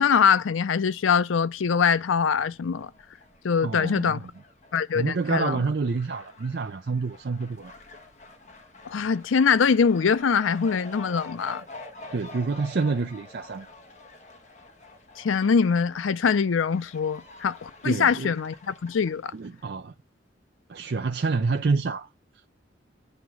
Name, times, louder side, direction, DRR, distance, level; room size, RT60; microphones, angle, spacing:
voice 1, 0.0-2.9 3.4-4.2 4.7-5.6 8.8-11.6 15.2-19.3, left 6 dB, 90° left, 0.5 m, -23 dB
Fowl, 2.4-19.6, left 2 dB, 40° left, 1.3 m, -48 dB
voice 2, 3.6-4.2 4.9-7.7 12.1-13.7 17.8-18.3 19.3-19.9 20.7-22.1, right 4 dB, 55° right, 0.4 m, -28 dB
9.2 x 3.5 x 6.2 m
head